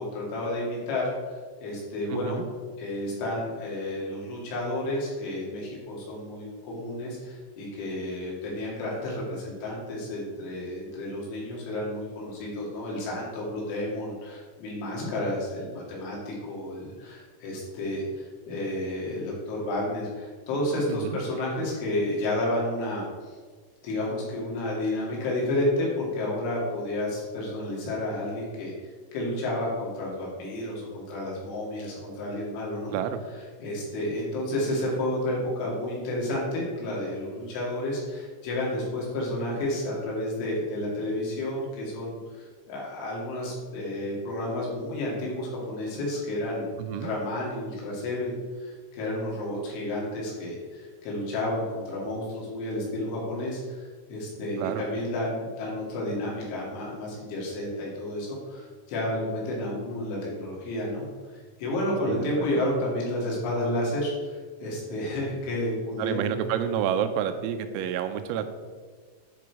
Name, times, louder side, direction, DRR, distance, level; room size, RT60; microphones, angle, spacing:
voice 1, 0.0-2.4 2.8-23.4 23.8-33.0 33.6-66.3, left 1 dB, 70° left, -4 dB, 4.5 m, -31 dB
voice 2, 2.1-2.5 20.9-21.2 32.9-33.2 46.8-47.1 54.6-54.8 62.1-62.7 66.0-68.5, right 9 dB, 90° right, 9 dB, 3.4 m, -29 dB
10.5 x 5.0 x 4.7 m, 1.5 s
omnidirectional pair, 5.9 m